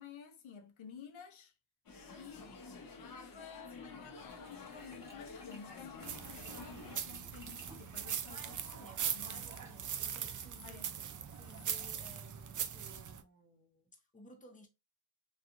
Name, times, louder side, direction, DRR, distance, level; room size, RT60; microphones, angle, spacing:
voice 1, 0.0-1.5 2.1-9.7 10.6-10.9, left 6 dB, 80° left, 0.6 m, -53 dB
sound 1, 1.9-7.0, left 4 dB, 45° left, 0.8 m, -50 dB
sound 2, 4.3-9.9, equal, 5° right, 1.2 m, -60 dB
sound 3, 6.0-13.2, right 8 dB, 45° right, 0.4 m, -41 dB
voice 2, 8.3-10.8 11.3-14.7, left 1 dB, 15° left, 0.8 m, -57 dB
2.7 x 2.4 x 2.4 m
cardioid pair, 65°, 47 cm